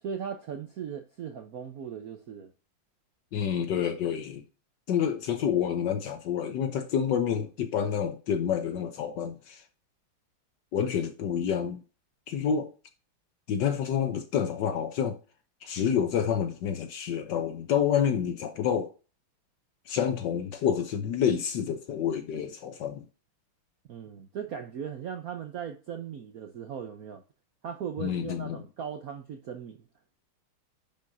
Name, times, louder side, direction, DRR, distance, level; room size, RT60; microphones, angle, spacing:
voice 1, 0.0-2.5 23.9-27.2 27.6-29.8, right 7 dB, 70° right, 0.8 m, -38 dB
voice 2, 3.3-4.4 4.9-9.6 10.7-11.8 12.3-12.7 13.5-15.2 15.6-18.9 19.9-23.1 28.0-28.6, left 8 dB, 65° left, 1.1 m, -28 dB
10.5 x 5.3 x 2.7 m
omnidirectional pair, 2.4 m